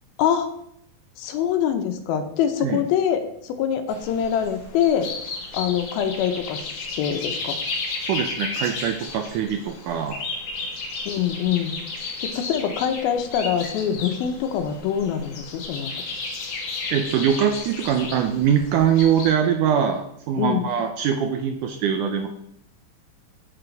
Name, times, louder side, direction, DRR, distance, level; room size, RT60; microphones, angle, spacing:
voice 1, 0.2-0.5 1.2-5.1 5.5-7.6 11.1-11.8 12.2-15.9 20.4-20.7, left 9 dB, 90° left, 7 dB, 2.8 m, -24 dB
sound 1, 3.9-19.3, left 3 dB, 55° left, 1.9 m, -33 dB
voice 2, 8.0-10.2 16.9-22.3, right 8 dB, 80° right, 5 dB, 1.9 m, -22 dB
7.9 x 7.7 x 4.6 m, 0.74 s
omnidirectional pair, 4.3 m